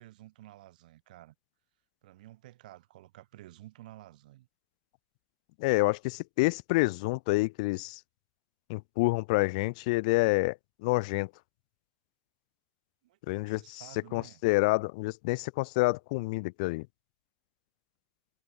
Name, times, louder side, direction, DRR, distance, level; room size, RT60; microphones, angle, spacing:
voice 1, 0.0-1.3 2.0-4.5 13.0-14.4, right 16 dB, 80° right, 7.5 m, -52 dB
voice 2, 5.6-8.0 8.7-11.3 13.3-13.8 14.1-16.9, left 25 dB, 60° left, 0.4 m, -28 dB
supercardioid pair, 160°, 4 cm